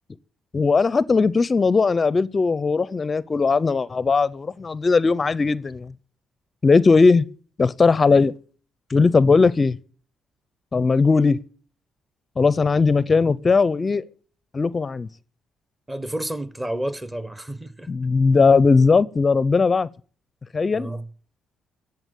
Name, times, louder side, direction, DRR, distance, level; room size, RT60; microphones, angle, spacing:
voice 1, 0.5-5.9 6.6-7.3 7.6-8.3 8.9-9.7 10.7-11.4 12.4-14.0 14.5-15.1 17.9-19.9 20.5-20.9, left 4 dB, 30° left, 0.6 m, -18 dB
voice 2, 15.9-17.9 20.7-21.1, right 1 dB, 15° right, 1.1 m, -30 dB
16.5 x 7.0 x 9.3 m
cardioid pair, 90°, 0 cm